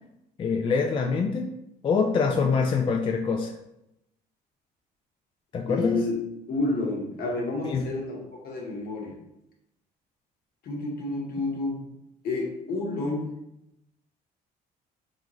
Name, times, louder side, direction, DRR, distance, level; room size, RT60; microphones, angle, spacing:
voice 1, 0.4-1.6 1.8-3.5 5.5-6.0 7.6-7.9, left 5 dB, 30° left, 1 dB, 0.3 m, -25 dB
voice 2, 5.7-6.2 6.5-9.2 10.6-11.8 12.2-13.4, left 2 dB, 65° left, -1 dB, 1.1 m, -30 dB
3.6 x 2.5 x 3.0 m, 0.84 s
cardioid pair, 110°, 17 cm